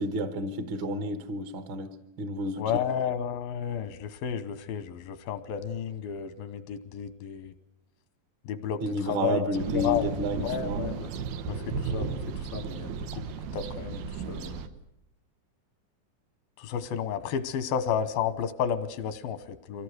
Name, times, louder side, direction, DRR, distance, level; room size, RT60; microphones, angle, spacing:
voice 1, 0.0-1.9 2.2-2.6 8.8-10.8, equal, 60° right, 1.4 m, -30 dB
voice 2, 2.6-7.5 8.5-9.4 9.7-10.1 10.4-11.1 11.4-12.2 12.5-13.2 13.5-14.6 16.6-19.8, left 8 dB, 85° left, 2.8 m, -32 dB
sound 1, 9.6-14.7, right 5 dB, 90° right, 2.9 m, -34 dB
24.0 x 17.0 x 8.0 m
omnidirectional pair, 4.2 m